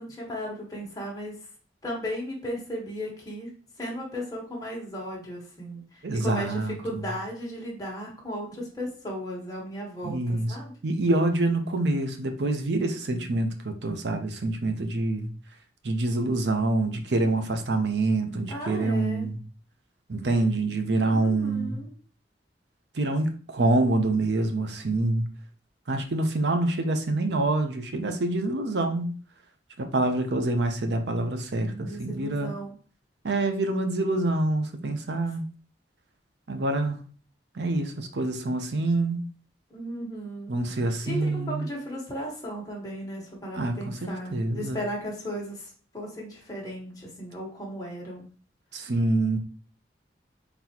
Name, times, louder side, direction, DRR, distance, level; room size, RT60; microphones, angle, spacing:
voice 1, 0.0-1.3 1.8-3.5 3.8-5.8 6.1-6.5 6.8-10.7 18.5-19.3 21.1-21.9 31.6-32.7 39.7-40.5 41.1-48.2, equal, 20° left, -3 dB, 1.2 m, -35 dB
voice 2, 6.0-7.0 10.0-10.6 10.8-15.3 15.8-19.4 20.1-21.8 22.9-25.3 25.9-29.2 29.8-32.5 33.2-35.4 36.5-37.0 37.5-39.3 40.5-41.7 43.5-44.8 48.7-49.4, right 2 dB, 70° right, 6 dB, 0.6 m, -26 dB
4.0 x 3.4 x 2.9 m, 0.42 s
head